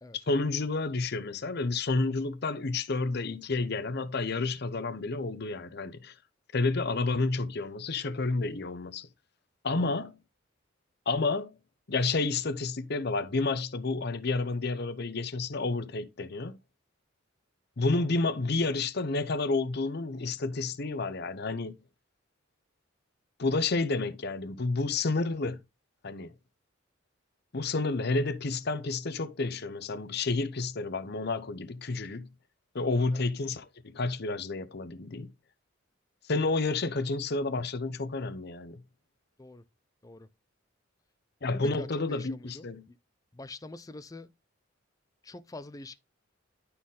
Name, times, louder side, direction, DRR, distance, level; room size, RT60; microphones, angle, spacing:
voice 1, 0.1-6.2 6.5-9.1 9.6-10.2 11.1-11.5 11.9-16.6 17.8-21.7 23.4-25.6 26.0-26.3 27.5-32.3 32.7-35.3 36.2-38.8 41.4-42.9, left 3 dB, 55° left, 0.8 m, -30 dB
voice 2, 41.5-43.0 43.3-44.3 45.2-46.0, left 2 dB, 15° left, 0.5 m, -45 dB
11.0 x 4.2 x 3.7 m
head